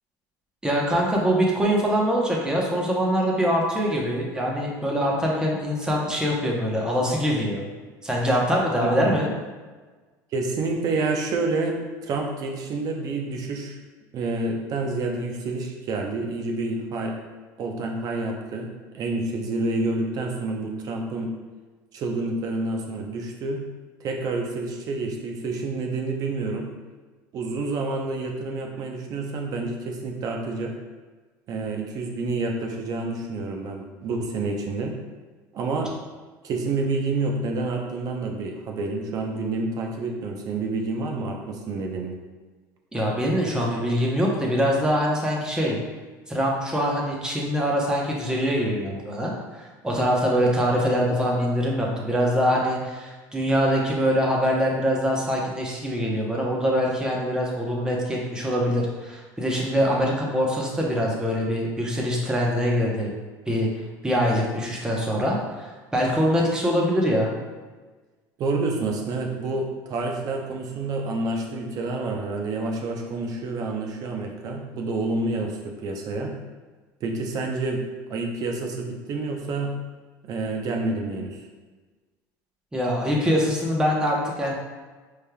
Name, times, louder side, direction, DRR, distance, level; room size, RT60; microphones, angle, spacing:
voice 1, 0.6-7.6 8.0-9.3 42.9-45.8 46.3-63.1 63.5-63.7 64.0-67.3 82.7-84.5, equal, 10° right, -2 dB, 0.9 m, -23 dB
voice 2, 8.8-9.2 10.3-13.8 14.1-17.2 17.6-18.7 18.9-21.3 21.9-23.6 24.0-26.7 27.3-30.7 31.5-34.9 35.5-35.9 36.4-42.2 68.4-76.3 77.0-77.8 78.1-79.7 80.2-81.4, right 3 dB, 50° right, 2 dB, 0.7 m, -28 dB
5.2 x 3.3 x 2.3 m, 1.3 s
supercardioid pair, 120°, 8 cm